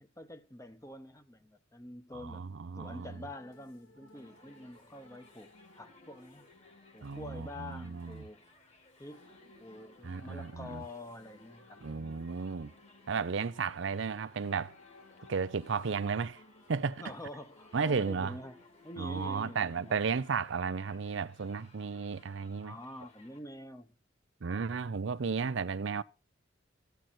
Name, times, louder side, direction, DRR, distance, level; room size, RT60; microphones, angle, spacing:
voice 1, 0.0-2.4 2.7-5.5 5.8-6.5 6.9-8.4 9.0-12.4 17.0-20.0 22.6-23.9, left 1 dB, 15° left, 1.1 m, -47 dB
voice 2, 2.1-3.1 7.0-8.2 10.0-10.8 11.8-12.7 13.1-14.8 15.3-16.4 16.7-17.0 17.7-18.3 19.0-22.7 24.4-26.0, right 5 dB, 65° right, 0.5 m, -34 dB
sound 1, 3.0-20.5, left 2 dB, 70° left, 3.3 m, -60 dB
Crowd, 4.2-23.4, left 3 dB, 35° left, 2.3 m, -62 dB
14.5 x 9.2 x 4.3 m
head